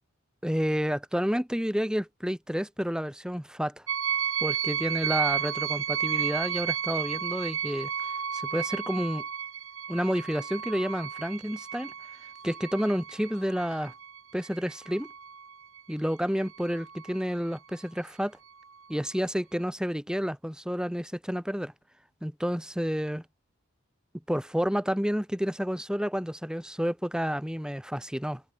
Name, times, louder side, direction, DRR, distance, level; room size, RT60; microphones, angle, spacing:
voice 1, 0.4-3.8 4.4-7.9 8.3-9.2 9.9-11.9 12.4-13.9 14.3-15.1 15.9-18.4 18.9-21.7 22.2-23.2 24.3-28.4, equal, 5° right, 5.4 m, -30 dB
sound 1, 3.9-15.8 16.4-17.2, right 8 dB, 80° right, 4.9 m, -33 dB
head